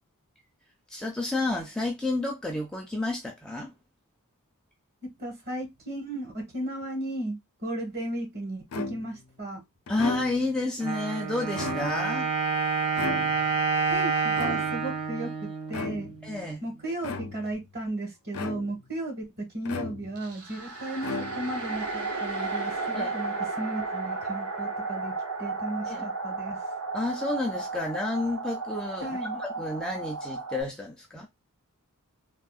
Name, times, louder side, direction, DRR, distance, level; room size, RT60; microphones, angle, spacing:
voice 1, 0.9-3.7 9.9-12.3 16.2-16.6 22.9-23.1 25.9-26.1 26.9-31.3, left 2 dB, 5° left, 0.4 m, -30 dB
voice 2, 5.2-9.6 13.9-16.1 16.6-19.3 19.5-21.1 21.3-25.1 25.4-26.6 29.0-29.4, right 1 dB, 45° right, 1.3 m, -35 dB
sound 1, 8.7-9.3 9.9-10.6 11.4-12.2 13.0-13.7 14.4-15.0 15.7-16.3 17.0-17.6 18.3-18.9 19.7-20.3 21.0-21.7, left 3 dB, 70° left, 0.5 m, -36 dB
Wind instrument woodwind instrument, 10.8-16.5, right 5 dB, 25° right, 0.7 m, -28 dB
sound 2, 20.2-30.6, right 3 dB, 75° right, 0.8 m, -34 dB
3.6 x 2.0 x 2.4 m
head